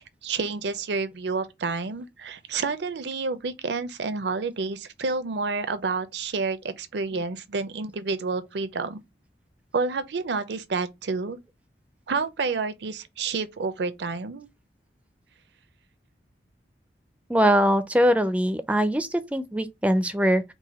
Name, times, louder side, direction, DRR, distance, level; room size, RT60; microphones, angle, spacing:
voice 1, 0.0-9.0 9.7-11.4 12.1-14.5, right 4 dB, 75° right, 0.5 m, -29 dB
voice 2, 17.3-20.4, equal, 10° right, 0.4 m, -22 dB
4.7 x 2.2 x 4.1 m
head